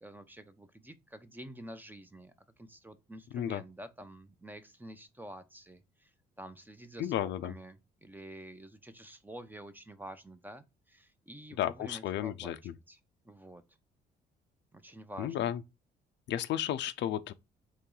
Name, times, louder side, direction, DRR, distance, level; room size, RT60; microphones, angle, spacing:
voice 1, 0.0-6.1 6.4-12.5 12.9-13.0 13.2-13.6 14.7-15.5, right 1 dB, 10° right, 0.7 m, -48 dB
voice 2, 7.0-7.5 11.6-12.7 15.2-15.6 16.3-17.3, left 11 dB, 65° left, 0.4 m, -33 dB
3.1 x 2.8 x 3.8 m
supercardioid pair, 60°, 20 cm